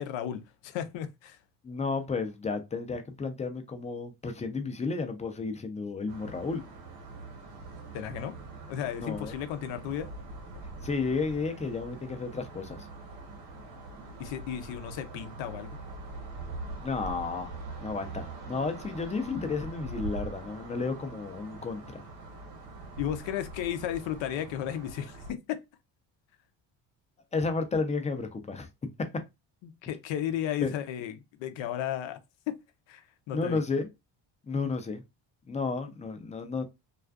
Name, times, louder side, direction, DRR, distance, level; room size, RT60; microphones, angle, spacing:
voice 1, 0.0-1.4 7.9-8.3 8.7-10.1 14.2-15.7 23.0-25.6 29.6-32.2 32.5-32.6 32.9-33.6, left 10 dB, 75° left, 0.6 m, -34 dB
voice 2, 1.6-6.6 9.0-9.3 10.8-12.9 16.8-17.5 17.8-22.0 27.3-28.7 30.6-30.7 33.3-33.9 34.5-35.0 35.5-36.6, left 4 dB, 15° left, 0.4 m, -32 dB
sound 1, 6.1-25.3, right 2 dB, 85° right, 1.1 m, -43 dB
2.4 x 2.4 x 2.3 m
cardioid pair, 95°, 45 cm